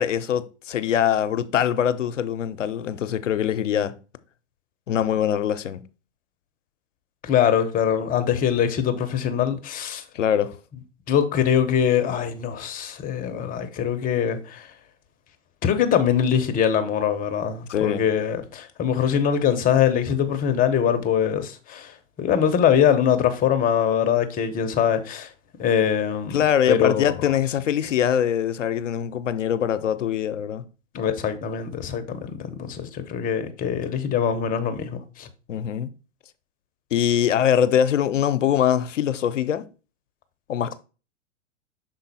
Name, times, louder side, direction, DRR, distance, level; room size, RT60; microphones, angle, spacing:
voice 1, 0.0-4.0 4.9-5.8 10.1-10.6 17.7-18.0 26.3-30.6 35.5-35.9 36.9-39.7 40.5-40.7, left 9 dB, 80° left, 0.7 m, -23 dB
voice 2, 7.2-10.0 11.1-14.7 15.6-25.3 25.6-27.1 30.9-35.3, left 8 dB, 25° left, 0.8 m, -23 dB
6.2 x 3.9 x 4.0 m
hypercardioid pair, 110°, 36 cm